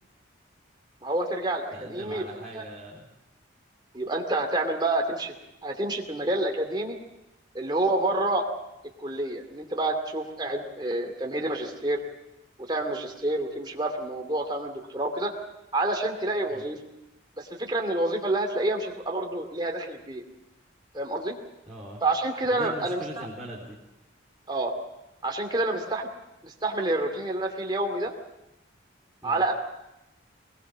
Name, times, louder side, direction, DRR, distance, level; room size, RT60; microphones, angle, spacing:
voice 1, 1.0-2.2 2.5-2.6 3.9-5.3 5.6-7.0 7.5-8.5 9.0-12.0 12.6-15.3 15.7-16.8 17.4-20.2 20.9-21.4 22.0-23.3 24.5-24.7 25.2-26.1 26.4-28.1 29.2-29.5, right 2 dB, 20° right, 2 dB, 2.5 m, -28 dB
voice 2, 1.7-3.1 16.5-16.6 21.7-22.0 22.5-23.8 29.2-29.4, right 1 dB, ahead, -9 dB, 4.0 m, -41 dB
21.5 x 20.5 x 7.4 m, 0.90 s
head